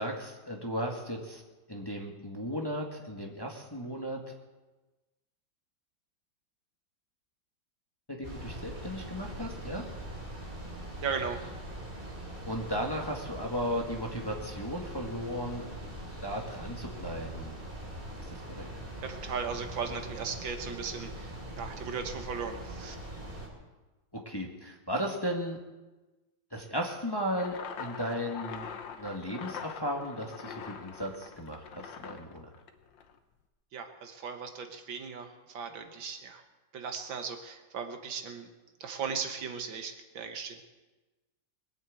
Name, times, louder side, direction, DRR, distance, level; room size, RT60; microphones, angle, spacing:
voice 1, 0.0-1.4 1.7-4.3 8.1-9.8 12.4-15.7 16.2-17.6 18.3-18.7 24.1-25.6 26.5-28.7 29.0-32.5, equal, 15° left, 0 dB, 1.6 m, -35 dB
sound 1, 8.2-23.5, right 1 dB, 25° right, 3.4 m, -42 dB
voice 2, 11.0-11.5 19.0-23.0 33.7-36.4 36.7-38.5 38.8-40.6, right 6 dB, 80° right, 6 dB, 2.1 m, -37 dB
sound 2, 27.3-33.2, left 6 dB, 75° left, 1.7 m, -43 dB
21.5 x 7.7 x 8.5 m, 1.2 s
omnidirectional pair, 2.1 m